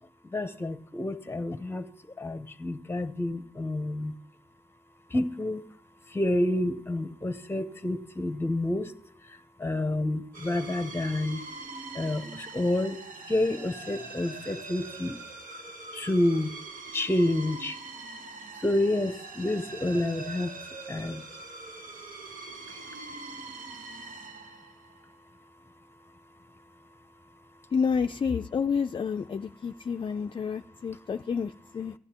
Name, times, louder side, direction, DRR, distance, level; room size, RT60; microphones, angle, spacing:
voice 1, 0.2-1.9 2.2-4.1 5.1-5.7 6.1-8.9 9.2-11.4 11.9-13.0 13.3-15.2 15.9-16.5 16.9-17.8 18.5-20.5 20.9-21.2 22.7-22.8, left 1 dB, 15° left, 11 dB, 0.8 m, -29 dB
sound 1, 10.3-25.1, right 3 dB, 80° right, 1.1 m, -43 dB
voice 2, 27.7-31.9, left 6 dB, 40° left, 7 dB, 0.4 m, -29 dB
16.5 x 11.0 x 2.9 m, 0.67 s
cardioid pair, 85°, 14 cm